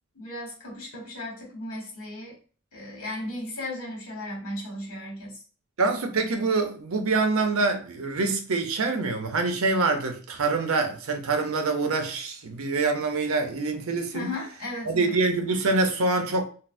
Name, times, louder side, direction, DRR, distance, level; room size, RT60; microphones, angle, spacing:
voice 1, 0.1-2.4 2.7-5.4 14.1-15.1, left 1 dB, 75° left, 1.4 m, -36 dB
voice 2, 5.8-14.3 14.9-16.5, right 3 dB, 70° right, 0.6 m, -25 dB
4.0 x 2.1 x 2.5 m
head